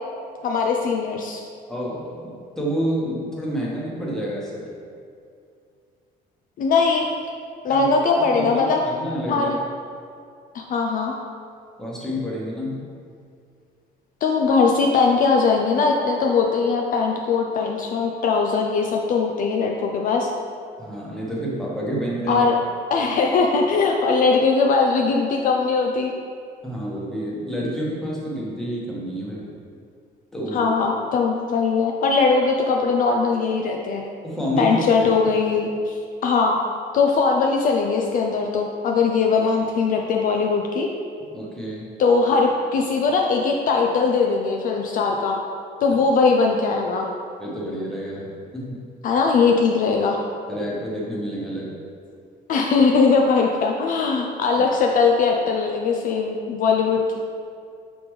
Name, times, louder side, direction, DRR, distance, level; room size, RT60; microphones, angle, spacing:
voice 1, 0.4-1.4 6.6-7.1 7.6-8.8 9.3-9.5 10.5-11.1 14.2-20.3 22.3-22.5 22.9-26.1 30.5-34.0 34.6-35.9 36.2-36.6 36.9-40.9 42.0-45.4 45.8-47.1 49.0-50.2 52.5-57.2, left 4 dB, 55° left, 1 dB, 0.4 m, -20 dB
voice 2, 1.7-4.7 7.7-7.9 8.3-9.5 11.8-12.8 20.8-22.5 26.6-29.4 30.3-30.7 34.2-35.1 41.3-41.9 45.9-46.0 47.4-48.8 50.5-51.8, equal, 5° left, -6 dB, 1.1 m, -29 dB
4.9 x 3.4 x 3.1 m, 2.3 s
cardioid pair, 110°, 17 cm